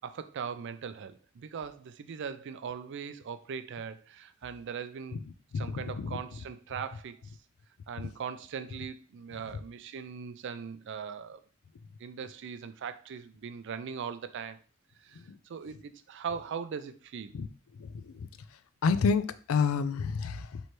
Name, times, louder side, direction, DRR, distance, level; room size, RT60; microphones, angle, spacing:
voice 1, 0.0-5.2 5.5-7.2 7.9-11.4 12.0-14.6 15.0-17.3, right 6 dB, 60° right, 12 dB, 0.4 m, -40 dB
voice 2, 5.5-6.2 15.1-15.4 17.3-17.5 17.8-18.3 18.8-20.6, left 5 dB, 80° left, 13 dB, 0.4 m, -29 dB
3.1 x 3.1 x 4.3 m, 0.39 s
head